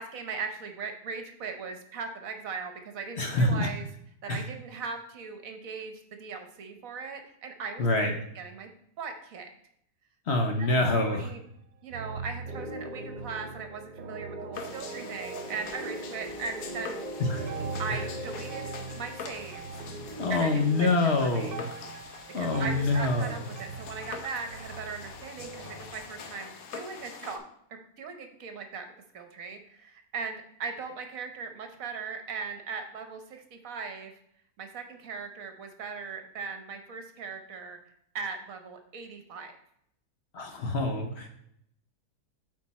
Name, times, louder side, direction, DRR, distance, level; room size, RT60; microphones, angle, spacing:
voice 1, 0.0-3.9 4.2-8.7 9.0-9.5 10.6-10.7 11.0-11.4 11.8-17.0 17.8-19.8 20.3-21.5 22.4-27.4 28.0-28.9 29.1-34.1 34.6-37.8 38.1-39.5, right 5 dB, 65° right, 6 dB, 1.3 m, -39 dB
voice 2, 3.2-3.7 4.3-4.4 7.8-8.1 10.3-11.3 17.2-17.4 17.9-18.0 20.2-21.6 22.3-23.4 40.3-41.3, left 2 dB, 50° left, 4 dB, 1.0 m, -26 dB
sound 1, 10.6-11.6 11.9-15.7 16.0-16.6 17.2-26.3, right 4 dB, 85° right, 1.1 m, -42 dB
sound 2, 12.5-21.0, right 1 dB, 45° right, 0.6 m, -41 dB
sound 3, 14.5-27.4, left 5 dB, 70° left, 1.3 m, -44 dB
8.4 x 4.4 x 4.2 m, 0.71 s
omnidirectional pair, 1.6 m